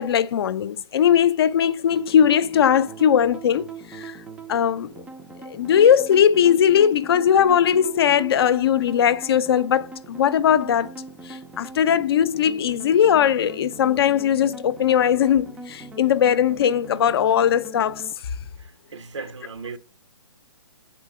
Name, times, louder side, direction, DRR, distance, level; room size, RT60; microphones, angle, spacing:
voice 1, 0.0-4.2 4.5-5.0 5.5-10.9 11.2-18.0, left 9 dB, 60° left, 0.5 m, -19 dB
sound 1, 1.9-18.1, right 3 dB, 5° right, 0.4 m, -41 dB
voice 2, 18.6-19.8, right 4 dB, 85° right, 1.1 m, -37 dB
6.5 x 4.4 x 4.8 m
hypercardioid pair, 145°, 15 cm